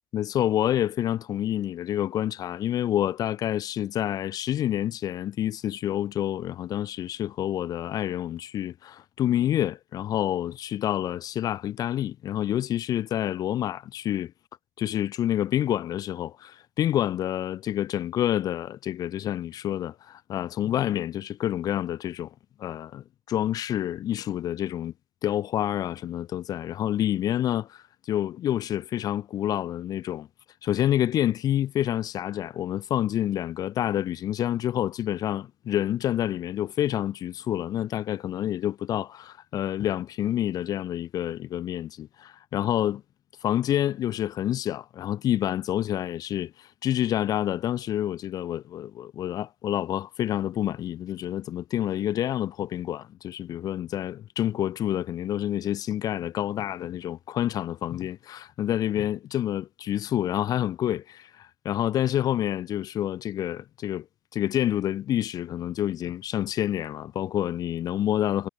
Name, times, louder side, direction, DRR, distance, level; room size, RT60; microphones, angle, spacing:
voice 1, 0.1-14.3 14.8-22.3 22.6-24.9 25.2-30.3 30.6-43.0 43.4-64.1 64.3-68.5, left 11 dB, 20° left, 0.5 m, -28 dB
supercardioid pair, 155°, 18 cm